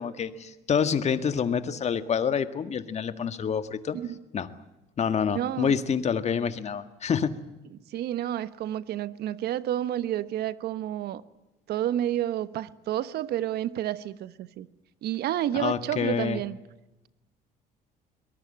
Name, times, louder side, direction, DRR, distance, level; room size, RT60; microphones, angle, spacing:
voice 1, 0.0-4.0 4.3-4.5 5.0-7.4 15.5-16.4, left 7 dB, 40° left, 11 dB, 1.8 m, -27 dB
voice 2, 5.3-5.8 7.9-11.2 11.7-14.7 15.0-16.6, right 12 dB, 70° right, 15 dB, 1.2 m, -30 dB
23.0 x 19.5 x 8.8 m, 1.0 s
cardioid pair, 110°, 17 cm